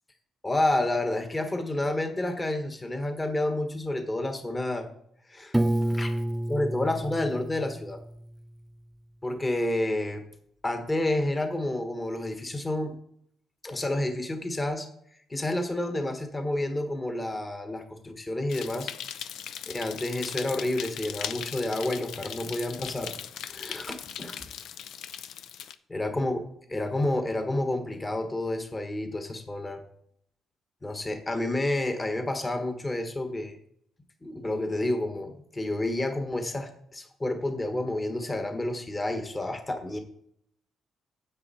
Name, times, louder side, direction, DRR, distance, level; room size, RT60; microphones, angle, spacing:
voice 1, 0.4-4.9 5.3-5.5 5.9-6.1 6.5-8.0 9.2-10.2 10.6-12.9 13.6-14.9 15.3-18.9 19.7-23.1 23.5-24.4 25.9-26.4 26.7-29.8 30.8-33.5 34.2-40.0, left 1 dB, 20° left, 6 dB, 1.4 m, -29 dB
Piano, 5.5-8.5, right 1 dB, 5° right, 0.4 m, -29 dB
sound 1, 18.5-25.7, left 9 dB, 75° left, 0.5 m, -39 dB
9.5 x 7.9 x 4.2 m, 0.70 s
cardioid pair, 90°, 0 cm